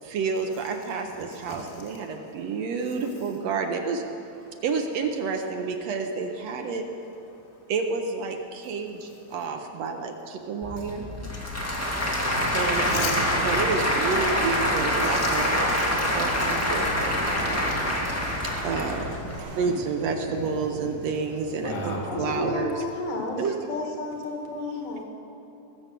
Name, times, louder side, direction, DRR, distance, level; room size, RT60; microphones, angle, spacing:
voice 1, 0.0-4.0 4.6-6.9 7.7-11.1 12.5-17.2 17.5-17.9 18.4-19.2 19.6-22.9 23.4-23.6, right 5 dB, 70° right, 4 dB, 1.8 m, -30 dB
Applause / Crowd, 10.6-19.4, left 1 dB, 20° left, 0.4 m, -26 dB
voice 2, 11.3-13.1 15.0-15.6 17.9-18.4 21.6-22.0, left 3 dB, 20° right, -3 dB, 0.8 m, -38 dB
sound 1, 12.3-22.9, right 3 dB, 90° right, 2.9 m, -39 dB
voice 3, 22.1-23.4 23.7-25.0, left 3 dB, 75° left, 1 dB, 3.2 m, -32 dB
20.5 x 6.9 x 7.5 m, 2.9 s
omnidirectional pair, 3.4 m